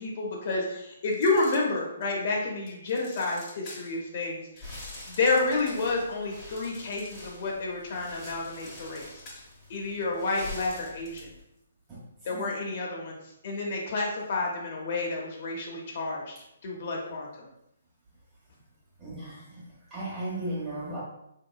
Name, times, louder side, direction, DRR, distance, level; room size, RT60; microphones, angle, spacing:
voice 1, 0.0-4.7 5.1-9.2 9.7-11.3 12.2-13.2 13.4-16.3 16.6-17.5, left 3 dB, 45° left, -2 dB, 0.9 m, -30 dB
sound 1, 1.1-2.2 2.7-4.0 4.6-7.5 7.8-11.4, left 2 dB, 20° left, 0.9 m, -48 dB
sound 2, 4.5-11.4, left 2 dB, ahead, 1.4 m, -46 dB
voice 2, 19.0-19.6 19.9-21.0, right 1 dB, 15° right, -6 dB, 1.3 m, -35 dB
4.4 x 2.8 x 2.3 m, 0.80 s
hypercardioid pair, 155°, 0 cm